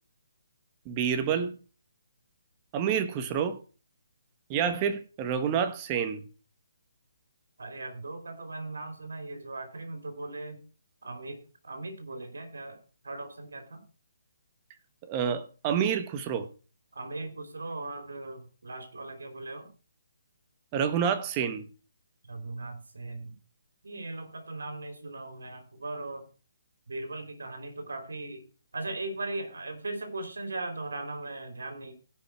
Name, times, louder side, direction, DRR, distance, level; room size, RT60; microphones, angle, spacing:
voice 1, 0.8-1.6 2.7-3.6 4.5-6.2 15.1-16.5 20.7-21.6, right 7 dB, 25° right, 9 dB, 1.2 m, -28 dB
voice 2, 7.6-10.6 11.0-13.8 16.9-19.7 22.3-23.4 23.8-26.3 26.9-28.4 28.7-31.9, right 2 dB, 85° right, 7 dB, 3.3 m, -38 dB
16.5 x 5.6 x 4.6 m, 0.36 s
hypercardioid pair, 155°, 0 cm